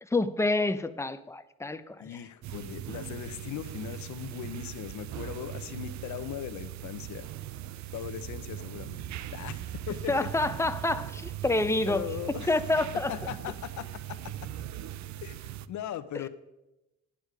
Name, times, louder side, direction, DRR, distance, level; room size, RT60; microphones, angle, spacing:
voice 1, 0.0-2.1 10.1-12.1 12.5-13.1, left 2 dB, 10° left, 11 dB, 0.6 m, -28 dB
voice 2, 2.0-7.3 7.9-9.6 9.9-10.3 11.8-12.5 13.1-14.3 15.2-16.3, left 10 dB, 70° left, 13 dB, 0.8 m, -39 dB
sound 1, 2.4-15.7, right 12 dB, 65° right, 0.5 m, -40 dB
10.0 x 8.2 x 4.9 m, 0.96 s
cardioid pair, 90°, 30 cm